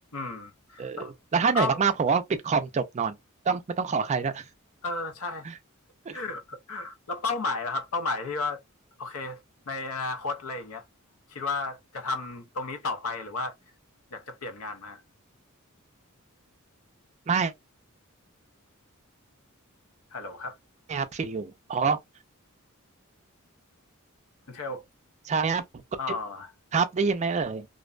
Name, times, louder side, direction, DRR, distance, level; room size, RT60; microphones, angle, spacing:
voice 1, 0.1-1.1 1.5-1.8 4.8-5.5 6.1-8.6 9.0-9.4 9.7-10.8 11.3-13.5 14.1-15.0 20.1-20.6 24.5-24.8 26.0-26.5, left 3 dB, 85° left, 0.6 m, -33 dB
voice 2, 1.3-3.2 3.5-4.4 5.5-5.6 6.1-6.2 17.3-17.5 20.9-22.0 25.3-25.6 26.7-27.7, right 5 dB, 35° right, 0.3 m, -26 dB
2.5 x 2.1 x 2.4 m
head